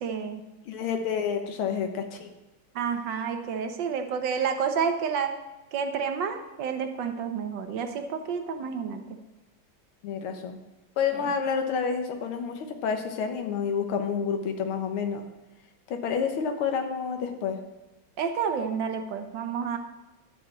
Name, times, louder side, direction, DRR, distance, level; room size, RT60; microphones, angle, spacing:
voice 1, 0.0-0.4 2.7-5.3 5.7-9.0 11.2-11.3 18.2-19.8, right 6 dB, 65° right, 6 dB, 1.5 m, -29 dB
voice 2, 0.7-2.3 10.0-10.6 11.0-15.2 15.9-17.6, left 6 dB, 85° left, 5 dB, 1.9 m, -29 dB
11.0 x 4.7 x 7.5 m, 1.1 s
omnidirectional pair, 2.3 m